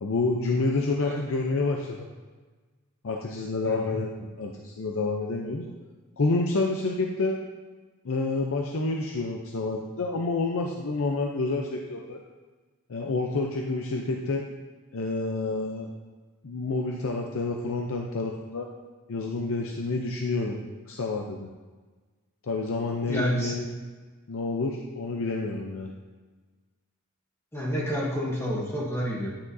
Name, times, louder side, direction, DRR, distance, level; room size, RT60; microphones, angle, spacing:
voice 1, 0.0-2.1 3.0-5.7 6.2-7.4 8.0-12.2 12.9-14.4 14.9-15.9 16.4-18.7 19.1-20.6 20.9-21.5 22.4-23.7 24.3-25.9, left 3 dB, 65° left, 1 dB, 0.6 m, -28 dB
voice 2, 3.6-4.0 23.1-23.6 27.5-29.3, equal, 10° left, -5 dB, 1.1 m, -29 dB
10.0 x 6.0 x 2.7 m, 1.3 s
head